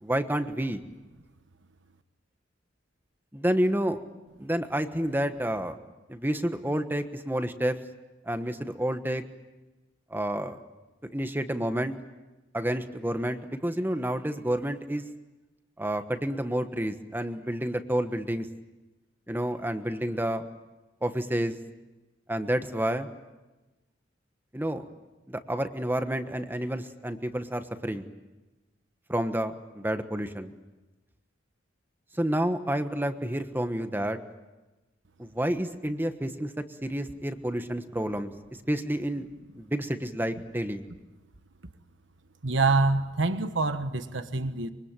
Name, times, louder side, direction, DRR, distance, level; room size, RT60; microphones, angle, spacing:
voice 1, 0.0-0.8 3.3-4.0 4.4-5.8 6.1-7.8 8.3-9.2 10.1-10.6 11.1-11.9 12.5-15.0 15.8-18.5 19.3-20.5 21.0-21.6 22.3-23.1 24.5-24.8 25.3-28.1 29.1-30.5 32.2-34.2 35.2-38.3 38.7-39.3 39.6-40.8, right 1 dB, 10° right, 8 dB, 1.3 m, -29 dB
voice 2, 42.4-44.7, right 3 dB, 70° right, 9 dB, 1.3 m, -26 dB
25.0 x 23.5 x 9.0 m, 1.1 s
head